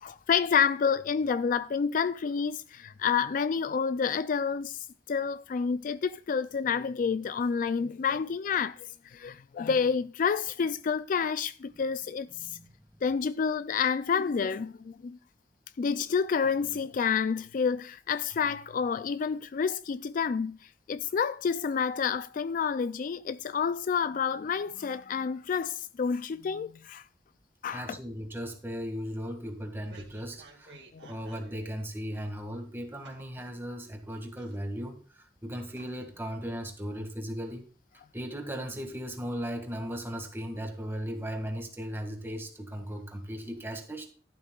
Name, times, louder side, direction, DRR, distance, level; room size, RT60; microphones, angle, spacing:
voice 1, 0.0-4.8 5.1-8.8 9.1-12.3 13.0-15.2 15.8-20.6 20.9-27.0 27.6-28.0 30.9-31.1, left 6 dB, 50° left, 0.3 m, -29 dB
voice 2, 12.3-13.0 27.7-30.7 31.1-37.7 38.1-44.1, equal, 15° right, 2.0 m, -37 dB
sound 1, 29.5-31.6 31.9-32.0 33.0-33.9 34.3-35.0 35.3-35.4 35.8-36.2 36.6-36.7, right 3 dB, 70° right, 2.1 m, -54 dB
12.5 x 11.5 x 2.4 m
head